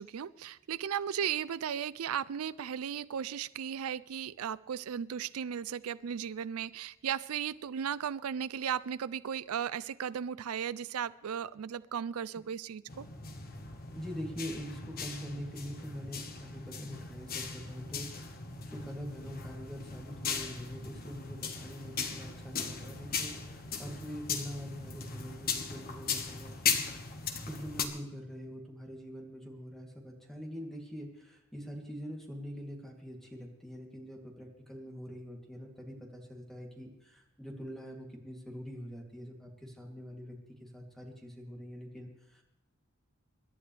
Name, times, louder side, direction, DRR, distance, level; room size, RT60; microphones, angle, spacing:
voice 1, 0.0-13.1, right 8 dB, 85° right, 18 dB, 0.4 m, -36 dB
sound 1, 12.9-27.8, left 5 dB, 45° left, 1.4 m, -38 dB
voice 2, 13.9-26.8 27.5-42.4, equal, ahead, 0 dB, 2.8 m, -44 dB
26.5 x 11.5 x 3.4 m, 0.94 s
head